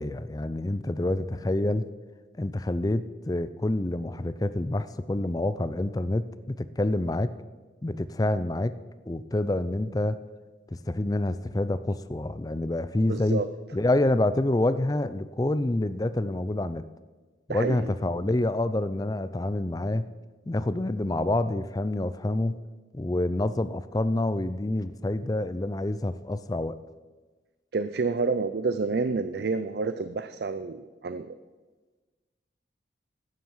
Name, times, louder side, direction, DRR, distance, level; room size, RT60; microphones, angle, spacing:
voice 1, 0.0-1.9 2.4-7.3 7.8-8.8 9.1-10.2 10.7-13.4 13.7-16.8 17.5-20.1 20.5-22.6 22.9-26.7, left 1 dB, 20° left, 13 dB, 0.4 m, -27 dB
voice 2, 13.1-13.5 17.5-17.8 27.7-31.3, right 4 dB, 60° right, 11 dB, 0.4 m, -29 dB
11.5 x 9.2 x 5.6 m, 1.3 s
head